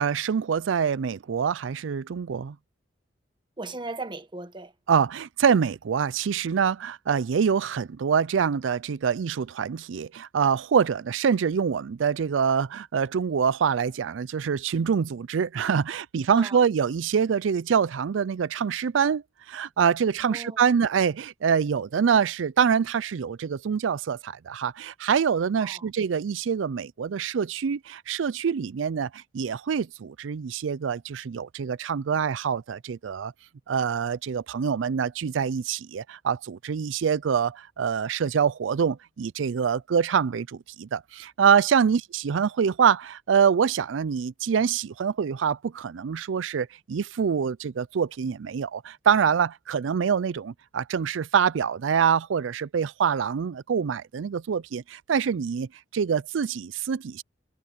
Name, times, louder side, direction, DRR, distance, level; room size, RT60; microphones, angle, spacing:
voice 1, 0.0-2.6 4.9-19.2 19.5-33.3 33.7-57.2, right 7 dB, 90° right, 0.4 m, -25 dB
voice 2, 3.6-4.7 16.3-16.6 20.2-20.6 25.6-25.9, right 3 dB, 25° right, 1.3 m, -37 dB
head